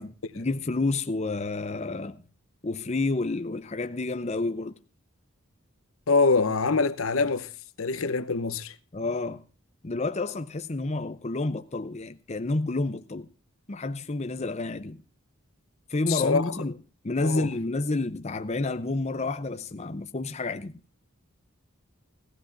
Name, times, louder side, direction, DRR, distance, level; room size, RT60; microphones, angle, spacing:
voice 1, 0.0-2.2 2.6-4.8 8.9-9.4 9.8-13.3 13.7-15.0 15.9-16.8 17.0-20.7, left 2 dB, 30° left, 0.7 m, -29 dB
voice 2, 6.1-7.5 7.8-8.7 16.1-16.5 17.2-17.5, left 4 dB, 75° left, 0.9 m, -24 dB
17.0 x 15.5 x 2.6 m
head